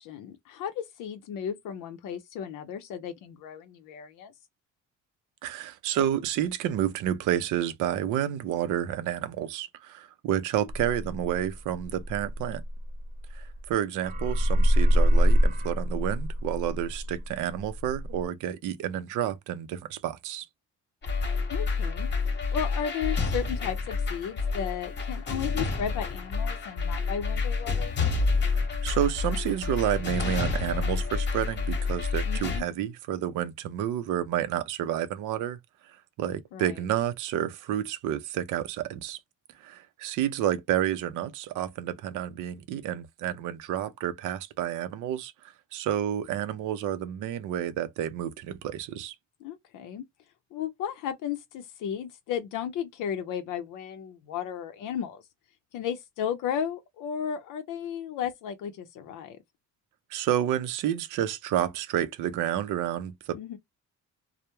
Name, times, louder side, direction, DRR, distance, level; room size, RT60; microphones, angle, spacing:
voice 1, 0.0-4.3 21.5-22.1 22.5-28.0 32.3-32.7 36.5-36.8 49.4-50.0 50.5-55.2 55.7-59.4 63.3-63.6, left 8 dB, 85° left, 0.5 m, -34 dB
voice 2, 5.4-12.6 13.3-20.5 28.4-35.6 36.2-39.2 39.6-49.1 60.1-63.4, right 11 dB, 90° right, 0.5 m, -30 dB
sound 1, 10.7-13.7 14.0-18.3, equal, 30° right, 0.5 m, -25 dB
sound 2, 21.0-32.6, left 4 dB, 35° left, 0.9 m, -29 dB
2.2 x 2.0 x 2.8 m
cardioid pair, 90°, 30 cm